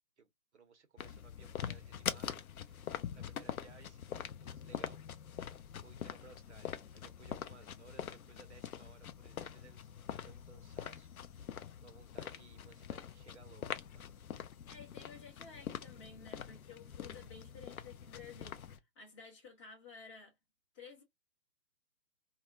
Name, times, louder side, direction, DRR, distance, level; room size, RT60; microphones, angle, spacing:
voice 1, 0.2-5.0 5.8-14.1, right 5 dB, 45° right, 0.7 m, -61 dB
sound 1, 1.0-18.8, left 8 dB, 60° left, 0.5 m, -44 dB
voice 2, 14.7-20.3 20.7-21.0, left 5 dB, 20° left, 1.3 m, -53 dB
2.8 x 2.3 x 2.4 m
figure-of-eight pair, 150°, 49 cm